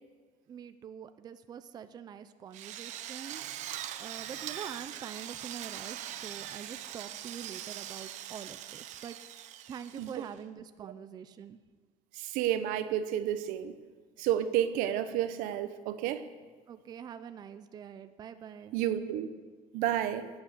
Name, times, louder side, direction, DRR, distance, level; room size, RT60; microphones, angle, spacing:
voice 1, 0.5-3.7 4.0-9.2 9.7-11.6 16.7-18.8, right 8 dB, 30° right, 11 dB, 0.5 m, -45 dB
Drill, 2.5-10.4, right 12 dB, 55° right, 0.8 m, -42 dB
voice 2, 12.1-13.7 14.2-16.2 18.7-19.3 19.7-20.3, right 11 dB, 80° right, 11 dB, 1.0 m, -30 dB
18.0 x 8.8 x 6.8 m, 1.4 s
cardioid pair, 160°, 14 cm